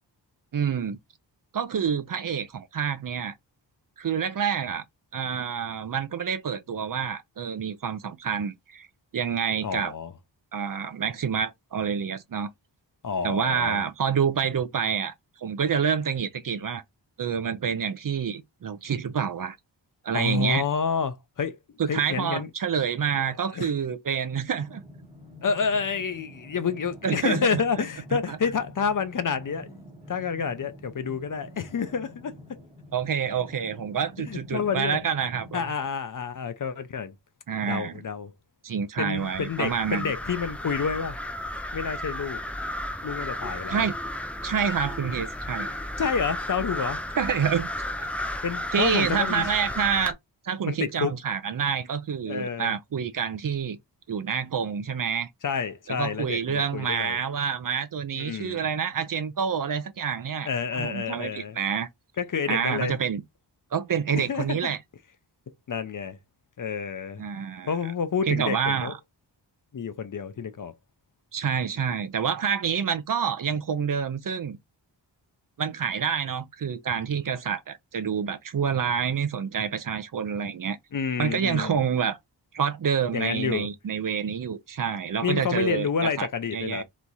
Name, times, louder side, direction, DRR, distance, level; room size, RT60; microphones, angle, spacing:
voice 1, 0.5-1.0 1.5-3.3 4.0-4.8 5.1-8.9 9.1-9.9 10.5-12.5 13.2-16.8 17.2-19.6 20.0-20.6 21.8-24.8 27.0-27.6 28.3-28.4 32.9-35.7 37.5-38.0 38.6-40.1 43.7-44.0 44.4-45.8 47.2-47.7 48.0-48.3 48.7-50.2 50.4-53.8 54.1-55.3 55.9-60.5 60.8-61.9 62.5-63.2 63.7-64.8 67.2-67.7 68.3-69.0 71.3-74.6 75.6-80.8 81.2-82.2 82.5-86.8, right 7 dB, 50° right, 0.5 m, -28 dB
voice 2, 9.6-10.1 13.0-13.8 20.1-21.6 21.9-22.5 23.1-23.2 23.5-23.7 25.4-29.8 30.1-32.3 34.2-35.0 35.5-37.1 37.6-38.3 39.0-41.2 41.7-42.4 43.0-43.9 46.0-47.0 48.4-49.4 50.7-51.1 52.2-52.7 55.4-57.2 58.1-58.6 60.4-61.6 62.2-63.0 64.1-64.7 65.7-66.2 66.6-67.2 67.7-68.9 69.7-70.7 80.9-81.8 83.1-83.7 85.2-86.8, left 6 dB, 45° left, 0.6 m, -29 dB
sound 1, 24.5-35.6, left 1 dB, 15° right, 0.9 m, -47 dB
sound 2, 39.2-50.1, left 1 dB, 5° left, 0.3 m, -33 dB
3.4 x 3.1 x 4.0 m
wide cardioid pair, 150°, 44 cm